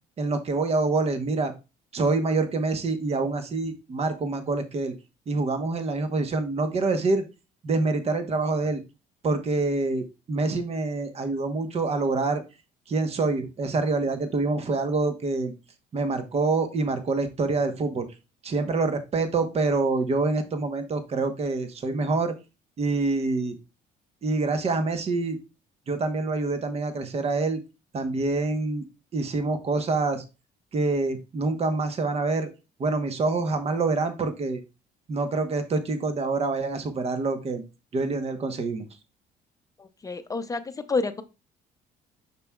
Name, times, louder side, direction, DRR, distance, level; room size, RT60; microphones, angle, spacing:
voice 1, 0.2-1.5 1.9-4.9 5.3-7.2 7.6-8.8 9.2-12.4 12.9-15.5 15.9-18.1 18.4-22.3 22.8-23.6 24.2-25.4 25.9-27.6 27.9-28.9 29.1-30.2 30.7-32.5 32.8-34.6 35.1-37.6 37.9-38.8, right 3 dB, 40° right, 8 dB, 1.0 m, -26 dB
voice 2, 39.8-41.2, left 3 dB, 20° left, 9 dB, 0.6 m, -29 dB
6.7 x 6.1 x 2.3 m, 0.28 s
cardioid pair, 110°, 17 cm